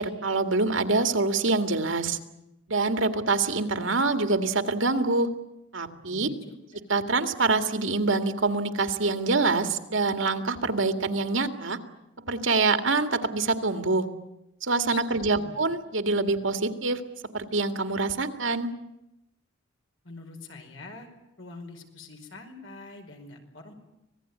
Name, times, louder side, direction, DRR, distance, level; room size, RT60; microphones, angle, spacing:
voice 1, 0.0-2.2 2.7-5.3 5.7-6.3 6.9-11.8 12.3-14.1 14.6-17.0 17.3-18.7, right 3 dB, 70° right, 7 dB, 2.1 m, -25 dB
voice 2, 6.1-6.6 14.9-15.6 20.0-21.1 21.4-23.7, left 3 dB, 70° left, 4 dB, 5.0 m, -44 dB
25.5 x 19.0 x 9.6 m, 0.88 s
head